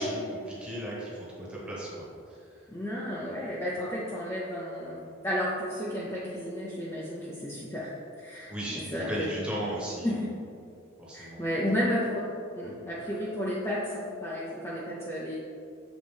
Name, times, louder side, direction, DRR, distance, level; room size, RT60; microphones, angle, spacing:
voice 1, 0.0-2.4 8.5-10.1 11.0-11.4, equal, 5° right, -7 dB, 1.2 m, -36 dB
voice 2, 2.7-5.0 5.2-7.9 8.2-8.5 8.9-9.5 10.0-10.1 11.1-12.2 12.6-15.4, equal, 15° left, -7 dB, 0.6 m, -32 dB
7.1 x 4.0 x 3.4 m, 2.5 s
head